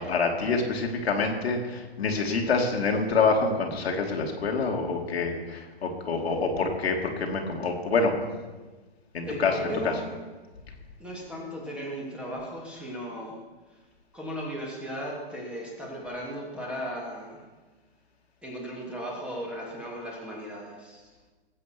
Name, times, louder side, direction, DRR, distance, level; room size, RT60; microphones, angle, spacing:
voice 1, 0.0-8.1 9.1-9.9, left 4 dB, 75° left, 1 dB, 2.9 m, -26 dB
voice 2, 9.2-10.1 11.0-13.4 13.7-13.8 14.1-17.5 18.4-21.1, equal, 5° right, -3 dB, 2.9 m, -36 dB
20.0 x 8.5 x 6.2 m, 1.3 s
hypercardioid pair, 145°, 31 cm